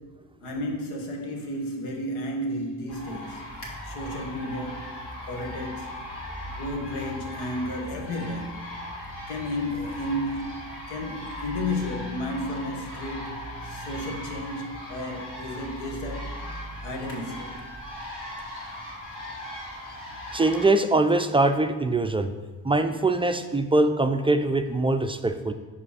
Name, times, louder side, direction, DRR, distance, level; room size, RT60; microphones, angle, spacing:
voice 1, 0.0-5.9 6.5-8.6 9.3-16.4 16.8-17.6, left 1 dB, 80° left, 1.2 m, -33 dB
sound 1, 2.9-20.7, equal, 50° left, 2.1 m, -38 dB
voice 2, 20.3-22.3 22.6-25.5, right 2 dB, 15° right, 0.3 m, -22 dB
5.5 x 5.0 x 4.8 m
supercardioid pair, 50°, 49 cm